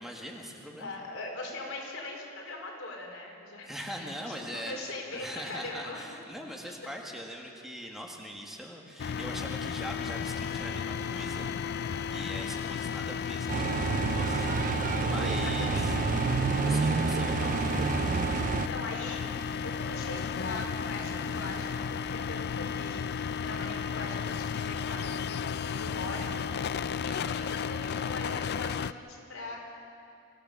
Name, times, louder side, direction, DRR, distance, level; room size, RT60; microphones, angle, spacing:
voice 1, 0.0-1.0 3.6-4.8 5.1-11.5 12.1-14.5 15.1-16.0 16.6-17.6, equal, ahead, 0 dB, 1.8 m, -41 dB
voice 2, 0.8-6.2 6.6-6.7 14.2-14.6 15.3-15.9 17.2-17.5 18.5-19.3 19.6-23.1 23.4-26.3 27.0-29.7, left 2 dB, 75° left, -1 dB, 4.5 m, -41 dB
sound 1, 9.0-28.9, left 6 dB, 50° left, 0.4 m, -34 dB
sound 2, 13.5-18.7, right 5 dB, 40° right, 0.4 m, -28 dB
25.5 x 15.5 x 7.0 m, 2.5 s
head